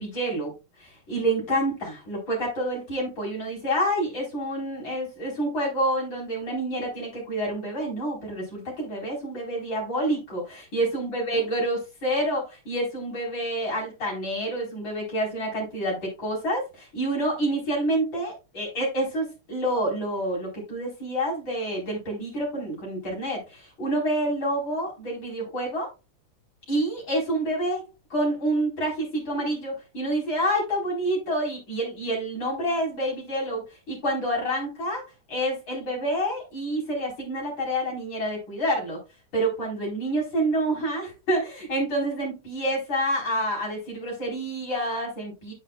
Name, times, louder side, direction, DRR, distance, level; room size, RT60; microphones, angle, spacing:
voice 1, 0.0-25.9 26.7-27.8 28.1-35.0 35.3-39.0 39.3-45.5, right 1 dB, 65° left, -2 dB, 5.2 m, -28 dB
9.6 x 7.5 x 2.4 m, 0.27 s
omnidirectional pair, 2.3 m